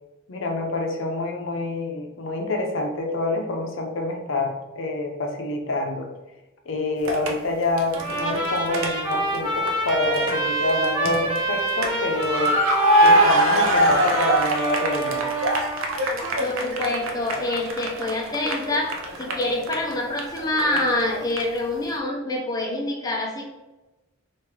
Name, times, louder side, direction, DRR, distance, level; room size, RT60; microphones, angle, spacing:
voice 1, 0.3-6.1 6.7-12.6 13.0-15.3, left 2 dB, 70° left, 2 dB, 0.6 m, -27 dB
sound 1, 7.1-7.3 7.8-9.4 9.7-10.3 10.7-11.9 12.2-21.0 21.3-21.4, right 1 dB, 90° right, 0.6 m, -23 dB
Trumpet, 7.9-15.8, right 2 dB, 20° right, 1.2 m, -27 dB
voice 2, 16.3-23.4, left 1 dB, 20° left, -1 dB, 0.5 m, -26 dB
3.5 x 2.5 x 3.1 m, 1.0 s
head